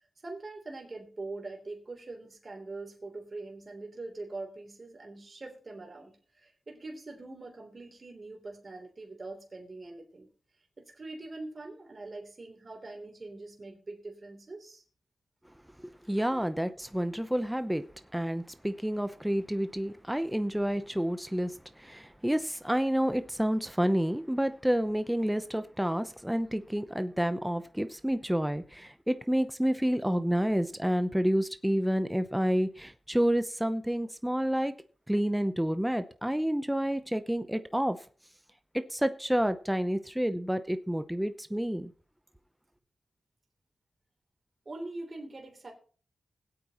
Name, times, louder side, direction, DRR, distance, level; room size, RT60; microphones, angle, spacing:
voice 1, 0.2-10.3 10.8-14.8 44.6-45.7, right 2 dB, 40° right, 3.2 m, -43 dB
voice 2, 15.8-17.8 18.1-34.7 35.1-38.0 38.7-41.9, equal, 5° right, 0.7 m, -29 dB
21.0 x 8.5 x 3.0 m
wide cardioid pair, 90°, 0 cm